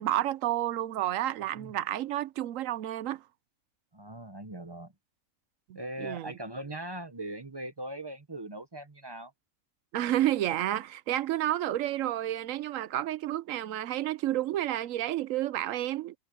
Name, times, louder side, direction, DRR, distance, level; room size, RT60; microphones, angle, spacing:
voice 1, 0.0-3.2 5.7-6.3 9.9-16.1, right 13 dB, 80° right, 1.0 m, -30 dB
voice 2, 3.9-4.9 5.7-9.3, right 1 dB, 20° right, 0.9 m, -40 dB
omnidirectional pair, 1.4 m